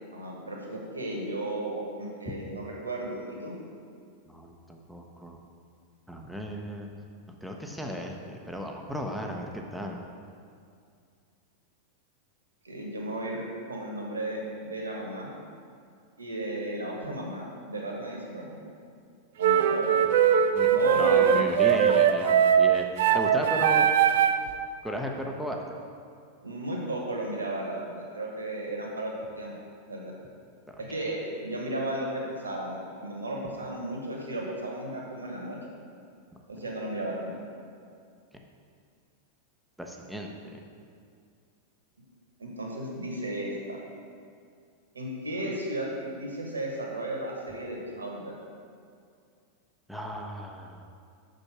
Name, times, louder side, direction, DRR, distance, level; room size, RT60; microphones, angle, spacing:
voice 1, 0.1-3.5 12.6-13.4 13.7-15.3 16.2-18.6 19.4-20.1 20.7-21.5 26.4-29.5 29.9-30.1 30.8-35.6 36.5-37.3 42.4-43.8 44.9-48.3, right 1 dB, 75° right, -1 dB, 1.4 m, -34 dB
voice 2, 4.2-5.4 6.1-6.9 7.3-10.0 20.5-22.9 23.1-23.9 24.8-25.8 30.7-30.8 39.8-40.6 49.9-50.8, equal, ahead, 1 dB, 0.7 m, -35 dB
sound 1, 19.4-24.5, right 8 dB, 55° right, 0.3 m, -21 dB
6.2 x 5.3 x 5.8 m, 2.3 s
figure-of-eight pair, 90°, 0 cm